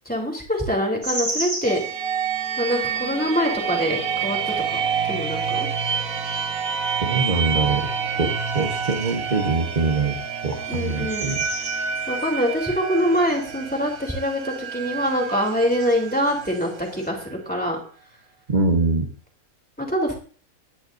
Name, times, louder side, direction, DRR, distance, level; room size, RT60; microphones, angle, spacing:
voice 1, 0.0-1.8 2.6-4.8 5.0-5.7 10.7-11.3 12.1-17.8 19.8-20.1, equal, 5° left, 0 dB, 3.2 m, -24 dB
sound 1, 1.0-2.8 3.4-3.9 4.4-4.5 4.8-7.9 8.2-17.1, right 1 dB, 60° right, 2.8 m, -38 dB
sound 2, 1.6-17.3, right 6 dB, 80° right, 1.6 m, -28 dB
voice 2, 7.0-7.9 8.2-10.2 10.4-11.4 18.5-19.1, right 3 dB, 35° right, 1 dB, 1.4 m, -23 dB
21.0 x 9.9 x 2.7 m, 0.41 s
omnidirectional pair, 1.5 m